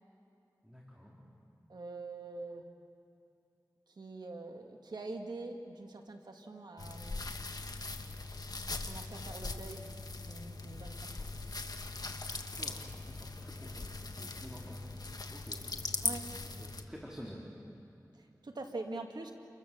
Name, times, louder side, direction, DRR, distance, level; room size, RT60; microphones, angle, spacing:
voice 1, 0.6-1.2 12.3-17.4, equal, 10° right, -3 dB, 3.9 m, -50 dB
voice 2, 1.7-2.7 3.9-7.3 8.7-9.9 10.2-11.3 16.0-16.2 18.1-19.3, right 2 dB, 80° right, 3 dB, 1.9 m, -44 dB
sound 1, 6.8-16.8, left 3 dB, 65° left, 1.4 m, -40 dB
29.5 x 23.0 x 6.9 m, 2.7 s
wide cardioid pair, 45°, 7 cm